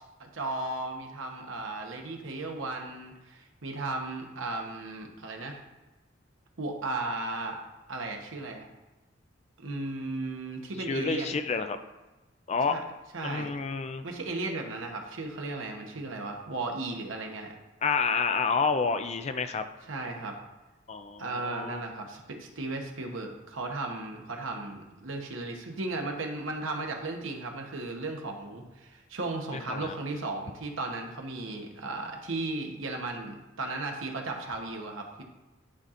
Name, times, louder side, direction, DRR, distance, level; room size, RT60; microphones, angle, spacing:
voice 1, 0.2-5.6 6.6-7.6 7.9-8.7 9.6-11.3 12.7-12.8 13.1-13.5 14.0-17.5 19.9-20.4 21.2-35.2, right 2 dB, 80° right, 2 dB, 1.0 m, -35 dB
voice 2, 10.9-11.8 12.5-12.8 13.2-14.0 17.8-19.6 20.9-21.8 29.5-30.0, left 5 dB, 35° left, 9 dB, 0.4 m, -29 dB
11.0 x 4.2 x 2.5 m, 1.1 s
head